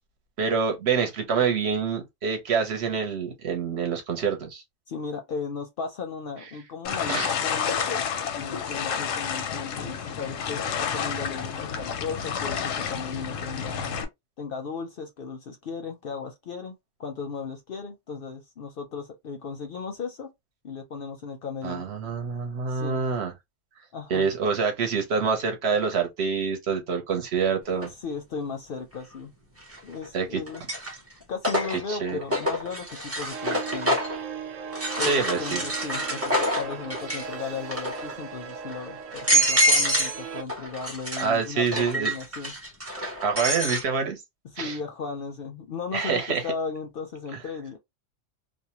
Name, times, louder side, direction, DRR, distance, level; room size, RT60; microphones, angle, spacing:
voice 1, 0.4-4.6 7.1-7.3 21.6-23.3 24.1-27.9 30.1-30.4 31.9-32.2 35.0-35.6 41.2-42.1 43.2-44.2 44.6-44.8 45.9-46.4, right 5 dB, 65° right, 1.0 m, -26 dB
voice 2, 4.9-8.0 8.4-13.9 14.4-16.7 17.0-20.3 20.6-21.9 22.7-23.0 23.9-24.3 28.0-29.3 29.8-30.6 31.3-34.0 35.0-42.5 44.5-47.8, left 5 dB, 60° left, 0.6 m, -36 dB
sound 1, 6.8-14.0, left 7 dB, 90° left, 1.0 m, -30 dB
sound 2, 27.8-27.9 29.6-30.1 30.5-34.2 34.7-37.3 37.6-38.1 38.7-38.8 39.1-40.2 40.5-43.8, equal, 15° right, 0.6 m, -27 dB
sound 3, 33.3-40.4, right 7 dB, 85° right, 1.1 m, -38 dB
2.6 x 2.1 x 2.8 m
omnidirectional pair, 1.3 m